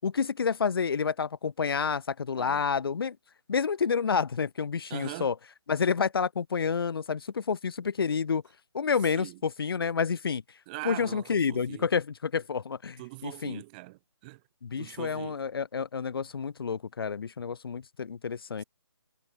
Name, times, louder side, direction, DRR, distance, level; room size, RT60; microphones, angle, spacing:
voice 1, 0.0-3.2 3.5-5.3 5.7-8.4 8.7-10.4 10.8-13.6 14.6-18.6, left 6 dB, 55° left, 5.0 m, -29 dB
voice 2, 4.9-5.3 9.1-9.4 10.7-11.9 13.0-14.4 14.8-15.4, right 22 dB, 20° right, 4.6 m, -41 dB
hypercardioid pair, 165°, 14 cm